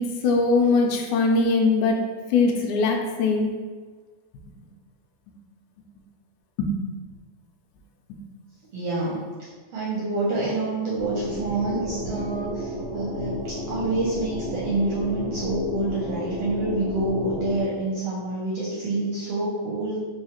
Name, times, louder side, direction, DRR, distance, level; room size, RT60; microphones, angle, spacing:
voice 1, 0.0-2.0 2.3-3.5 6.6-6.7 8.1-8.2, left 3 dB, 80° left, 1 dB, 1.9 m, -21 dB
voice 2, 8.7-9.2 9.7-20.0, right 2 dB, 70° right, -5 dB, 1.5 m, -27 dB
sound 1, 11.0-17.6, left 1 dB, 55° left, 2.0 m, -32 dB
4.7 x 3.1 x 2.9 m, 1.4 s
omnidirectional pair, 3.5 m